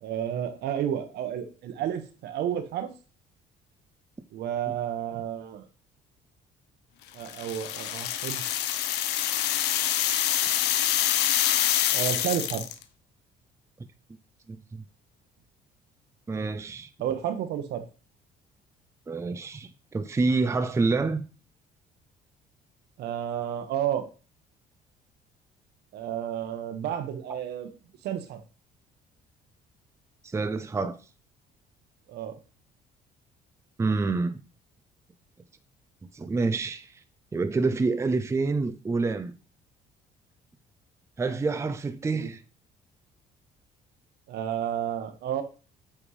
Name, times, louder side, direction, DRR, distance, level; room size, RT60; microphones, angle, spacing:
voice 1, 0.0-2.9 4.3-5.6 7.1-8.4 11.9-12.6 17.0-17.8 23.0-24.0 25.9-27.7 28.0-28.4 32.1-32.3 42.1-42.3 44.3-45.4, right 10 dB, 75° right, 1.2 m, -31 dB
sound 1, 7.3-12.8, left 12 dB, 85° left, 0.7 m, -26 dB
voice 2, 14.5-14.8 16.3-16.9 19.1-21.2 30.2-31.0 33.8-34.4 36.0-37.0 37.3-39.3 41.2-42.4, right 3 dB, 15° right, 0.6 m, -27 dB
8.5 x 3.5 x 4.9 m
cardioid pair, 110°, 17 cm